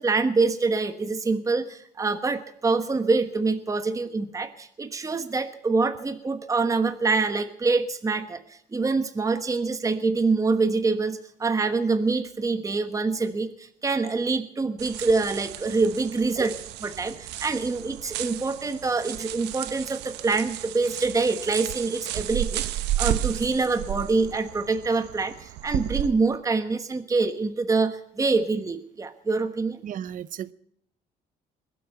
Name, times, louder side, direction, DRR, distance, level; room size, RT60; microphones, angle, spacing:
voice 1, 0.0-29.8, right 3 dB, 20° right, 9 dB, 1.2 m, -25 dB
sound 1, 14.8-26.1, right 14 dB, 90° right, 1.0 m, -33 dB
voice 2, 29.8-30.5, right 10 dB, 50° right, 17 dB, 0.8 m, -34 dB
21.5 x 8.4 x 8.1 m, 0.72 s
cardioid pair, 110°, 17 cm